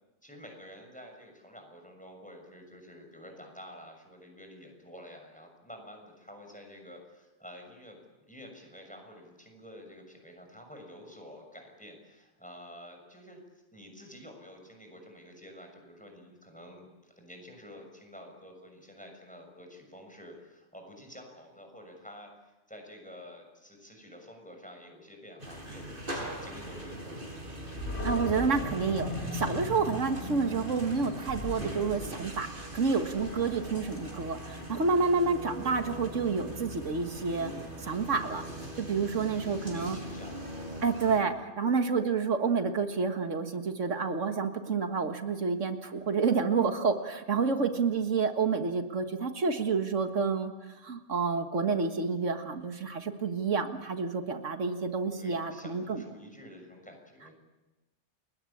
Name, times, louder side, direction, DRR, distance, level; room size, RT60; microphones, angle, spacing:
voice 1, 0.2-8.0 8.3-13.4 13.7-22.3 22.7-27.5 39.1-40.5 55.1-57.3, equal, 5° left, 3 dB, 6.6 m, -49 dB
sound 1, 25.4-41.2, right 1 dB, 45° right, 5.8 m, -41 dB
Animal, 27.8-34.9, left 1 dB, 60° left, 3.7 m, -39 dB
voice 2, 28.0-37.5 37.8-38.4 38.8-40.0 40.8-50.5 50.8-56.0, right 4 dB, 85° right, 7 dB, 2.0 m, -29 dB
30.0 x 21.5 x 8.7 m, 1.1 s
omnidirectional pair, 1.2 m